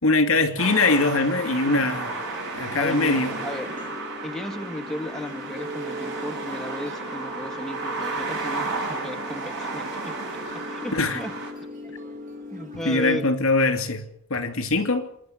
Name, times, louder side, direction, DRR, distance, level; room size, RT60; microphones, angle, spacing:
voice 1, 0.0-2.1 2.5-3.3 10.9-11.2 12.8-14.0 14.3-15.1, left 3 dB, 75° left, 2.6 m, -22 dB
sound 1, 0.6-11.5, right 3 dB, 60° right, 7.4 m, -33 dB
voice 2, 2.7-3.8 4.2-10.2 10.7-11.3 12.5-13.3, equal, ahead, 1.3 m, -35 dB
sound 2, 2.9-13.3, equal, 40° right, 3.7 m, -38 dB
27.0 x 10.5 x 9.4 m
head